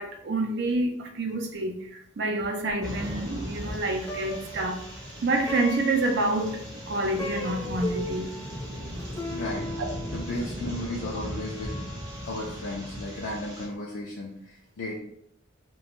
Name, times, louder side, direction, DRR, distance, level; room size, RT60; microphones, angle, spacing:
voice 1, 0.0-4.8 5.2-8.3, right 2 dB, 60° right, 4 dB, 0.4 m, -28 dB
sound 1, 2.8-13.7, equal, 20° right, 0.7 m, -38 dB
Plucked string instrument, 3.9-13.3, left 1 dB, 15° left, 0.4 m, -39 dB
voice 2, 9.2-9.7 10.1-11.7 12.3-15.0, left 1 dB, 75° left, -4 dB, 0.5 m, -35 dB
2.4 x 2.2 x 2.9 m, 0.70 s
head